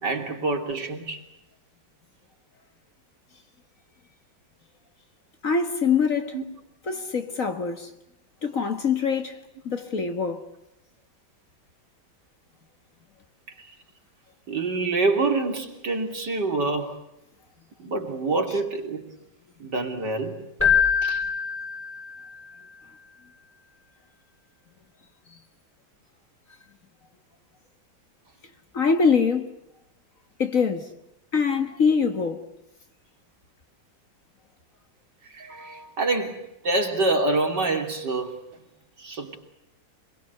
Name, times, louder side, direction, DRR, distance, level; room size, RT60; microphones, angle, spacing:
voice 1, 0.0-1.2 6.3-6.4 13.6-13.7 14.5-17.0 17.8-19.1 19.6-20.4 21.0-21.2 35.3-38.4 39.0-39.4, right 3 dB, 60° right, 3.6 m, -26 dB
voice 2, 5.4-6.3 6.9-7.9 8.4-9.4 9.7-10.4 28.7-29.5 30.4-30.8 31.3-32.4, left 5 dB, 45° left, 1.9 m, -23 dB
Keyboard (musical), 20.6-22.4, left 7 dB, 5° left, 3.0 m, -24 dB
26.5 x 22.0 x 8.1 m
omnidirectional pair, 2.1 m